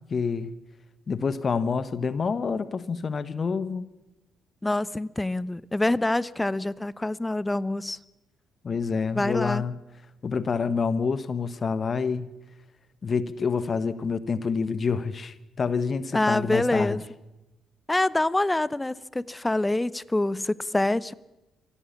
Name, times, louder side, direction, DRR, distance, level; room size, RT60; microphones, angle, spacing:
voice 1, 0.1-0.5 1.1-3.9 8.6-9.8 10.2-12.3 13.0-17.0, left 5 dB, 45° left, 15 dB, 1.3 m, -27 dB
voice 2, 4.6-8.0 9.1-9.6 16.1-17.0 17.9-21.1, left 2 dB, 15° left, 20 dB, 0.9 m, -26 dB
24.5 x 16.5 x 7.2 m, 1.0 s
hypercardioid pair, 45°, 0 cm